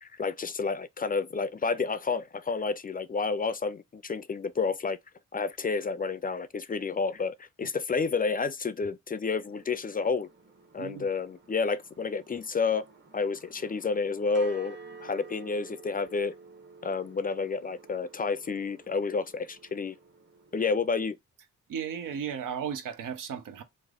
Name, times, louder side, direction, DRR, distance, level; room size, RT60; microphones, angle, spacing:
voice 1, 0.0-5.0 5.3-10.3 10.7-12.9 13.1-16.3 16.8-20.0 20.5-21.2, left 4 dB, 30° left, 0.3 m, -30 dB
sound 1, 9.5-21.1, right 4 dB, 35° right, 1.0 m, -52 dB
voice 2, 21.7-23.6, right 7 dB, 85° right, 0.6 m, -35 dB
3.2 x 2.0 x 3.6 m
cardioid pair, 50°, 31 cm